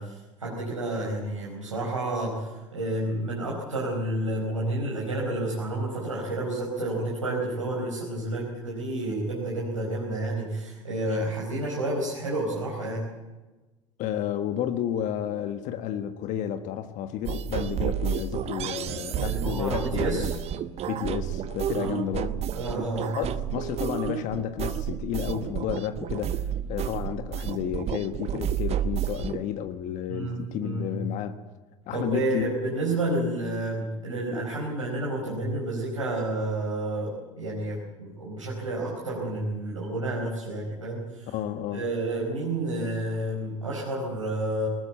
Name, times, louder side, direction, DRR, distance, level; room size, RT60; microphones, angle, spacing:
voice 1, 0.0-13.1 18.9-20.3 21.7-21.9 22.5-23.2 30.1-31.1 31.9-41.3 41.7-44.7, right 1 dB, 85° right, -4 dB, 4.7 m, -30 dB
voice 2, 14.0-20.3 20.9-22.4 23.2-31.4 31.9-32.5 41.3-41.9, left 10 dB, 50° left, 8 dB, 1.5 m, -31 dB
sound 1, 17.2-29.4, right 9 dB, 40° right, 1.1 m, -31 dB
20.0 x 20.0 x 8.1 m, 1.2 s
figure-of-eight pair, 70°, 16 cm